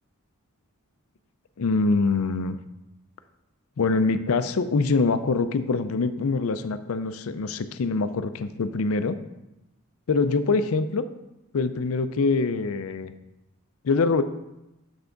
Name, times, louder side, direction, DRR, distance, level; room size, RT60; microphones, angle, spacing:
voice 1, 1.6-2.6 3.8-9.2 10.1-11.1 11.5-13.1 13.8-14.2, left 4 dB, 70° left, 11 dB, 0.5 m, -24 dB
7.0 x 5.7 x 3.9 m, 0.94 s
head